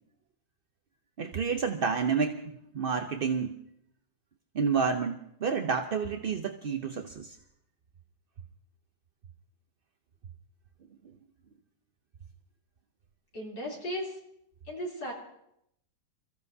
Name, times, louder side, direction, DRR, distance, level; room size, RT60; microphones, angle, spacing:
voice 1, 1.2-2.4 2.7-3.6 4.5-7.4, right 5 dB, 55° right, 5 dB, 0.6 m, -29 dB
voice 2, 13.3-14.2 14.7-15.1, equal, 80° left, -3 dB, 4.0 m, -36 dB
27.5 x 15.0 x 2.7 m, 0.77 s
omnidirectional pair, 1.8 m